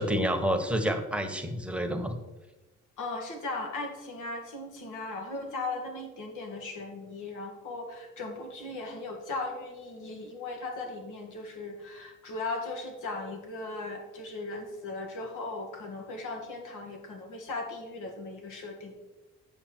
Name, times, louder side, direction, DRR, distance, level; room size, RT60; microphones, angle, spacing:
voice 1, 0.0-2.2, equal, 5° right, 5 dB, 1.1 m, -29 dB
voice 2, 3.0-19.0, left 2 dB, 80° left, 2 dB, 1.9 m, -37 dB
8.6 x 6.6 x 4.4 m, 1.1 s
cardioid pair, 90°, 30 cm